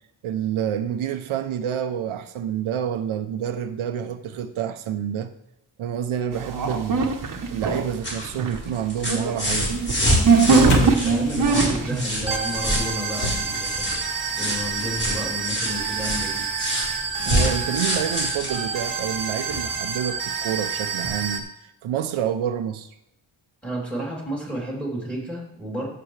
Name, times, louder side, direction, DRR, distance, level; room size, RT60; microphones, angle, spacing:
voice 1, 0.2-5.3 5.8-7.1 7.5-9.8 17.2-22.9, right 9 dB, 90° right, 0.8 m, -28 dB
sound 1, 6.3-8.0 8.2-21.4, right 4 dB, 40° right, 1.2 m, -24 dB
sound 2, 7.7-19.7 21.0-21.1, equal, 30° left, 4.4 m, -28 dB
sound 3, 9.5-14.8, left 3 dB, 75° left, 1.7 m, -38 dB
voice 2, 10.5-13.8 14.4-16.5 23.6-25.9, right 1 dB, ahead, 3.2 m, -31 dB
13.5 x 6.8 x 3.3 m
wide cardioid pair, 135°, 47 cm